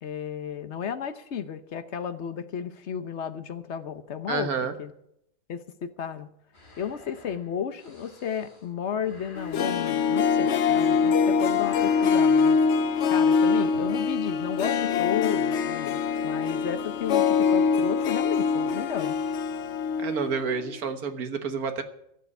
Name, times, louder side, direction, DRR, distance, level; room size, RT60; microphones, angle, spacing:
voice 1, 0.0-4.9 5.5-6.3 6.8-12.6 13.1-19.2, left 8 dB, 50° left, 11 dB, 0.9 m, -33 dB
voice 2, 4.3-4.7 20.0-21.8, right 5 dB, 55° right, 8 dB, 1.7 m, -29 dB
sound 1, 6.5-11.3 11.6-12.7, left 2 dB, 35° left, 3.7 m, -52 dB
Harp, 9.4-20.4 20.6-20.7, left 5 dB, 85° left, 0.6 m, -24 dB
13.5 x 7.7 x 9.6 m, 0.75 s
omnidirectional pair, 2.1 m